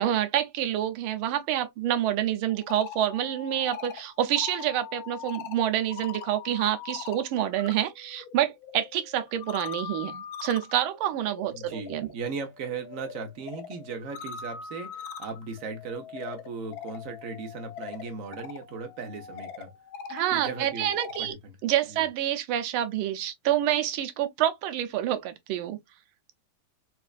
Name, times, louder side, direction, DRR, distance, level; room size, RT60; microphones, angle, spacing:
voice 1, 0.0-12.1 20.1-21.3 21.6-25.8, right 11 dB, 85° right, 1.5 m, -27 dB
sound 1, 2.5-7.7 8.1-21.3, left 7 dB, 85° left, 0.8 m, -42 dB
voice 2, 11.5-19.7 20.3-20.9 21.2-21.3 21.9-22.0, right 4 dB, 50° right, 1.0 m, -37 dB
4.3 x 2.4 x 2.3 m
omnidirectional pair, 2.3 m